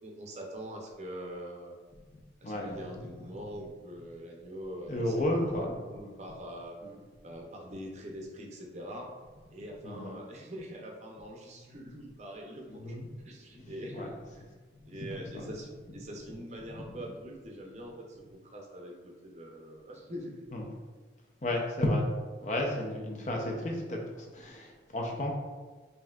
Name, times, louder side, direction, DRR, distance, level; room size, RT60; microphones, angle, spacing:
voice 1, 0.0-1.8 2.4-6.8 7.2-9.1 9.5-14.1 14.3-14.4 14.8-20.4, equal, 35° right, 0 dB, 0.6 m, -44 dB
voice 2, 2.1-3.1 4.9-5.8 6.8-6.9 9.8-10.2 12.7-13.1 13.5-14.1 15.0-15.4 16.7-16.8 20.5-20.6 21.4-22.0 22.4-25.3, left 1 dB, 40° left, 0 dB, 0.6 m, -33 dB
5.3 x 2.7 x 2.3 m, 1.4 s
head